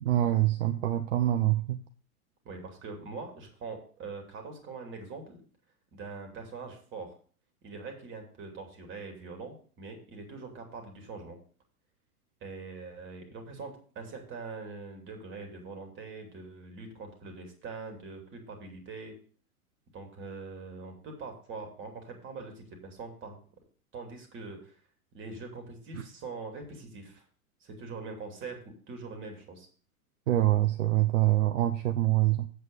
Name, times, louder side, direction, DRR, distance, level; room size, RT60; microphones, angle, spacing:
voice 1, 0.0-1.8 30.3-32.5, right 14 dB, 55° right, 8 dB, 0.9 m, -25 dB
voice 2, 2.4-5.4 5.9-7.2 7.6-11.4 12.4-19.2 19.9-23.4 23.9-24.8 25.1-27.2 27.6-29.7, right 4 dB, 25° right, 3 dB, 2.9 m, -43 dB
8.0 x 7.8 x 5.3 m, 0.43 s
figure-of-eight pair, 100°, 45 cm